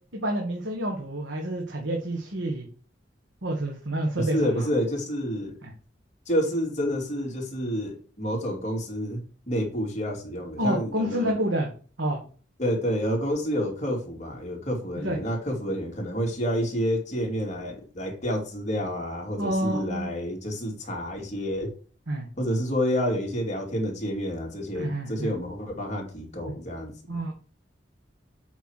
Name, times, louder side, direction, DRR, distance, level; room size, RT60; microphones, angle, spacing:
voice 1, 0.1-2.7 3.4-4.7 5.6-5.7 10.6-11.7 12.0-12.2 15.0-15.2 19.4-20.1 22.1-22.3 24.7-25.3 27.1-27.3, right 1 dB, 90° right, 1 dB, 1.7 m, -28 dB
voice 2, 4.2-5.6 6.3-11.4 12.6-21.7 22.4-27.2, equal, 40° left, 0 dB, 2.7 m, -29 dB
7.9 x 4.7 x 6.4 m, 0.40 s
head